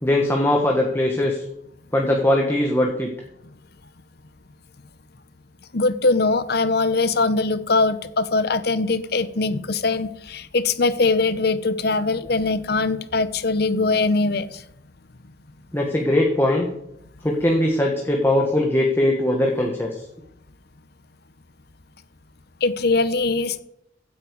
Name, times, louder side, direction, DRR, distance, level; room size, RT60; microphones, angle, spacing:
voice 1, 0.0-1.4 1.9-3.1 15.7-16.7 17.2-19.9, left 1 dB, 15° left, 0 dB, 1.5 m, -20 dB
voice 2, 5.7-14.6 22.6-23.6, left 3 dB, 60° left, 14 dB, 0.9 m, -21 dB
16.0 x 8.9 x 4.8 m, 0.77 s
head